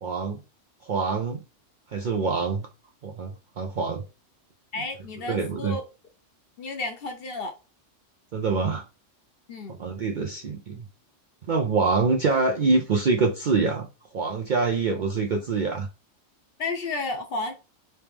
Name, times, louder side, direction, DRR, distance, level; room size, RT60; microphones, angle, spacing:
voice 1, 0.0-0.4 0.8-1.4 1.9-2.7 3.0-4.0 5.3-5.8 8.3-8.8 9.8-10.9 11.5-13.9 14.1-15.9, right 4 dB, 60° right, 0.5 m, -25 dB
voice 2, 4.7-5.8 6.6-7.5 9.5-9.8 16.6-17.6, left 3 dB, 55° left, 0.9 m, -32 dB
3.3 x 2.9 x 3.4 m
omnidirectional pair, 1.3 m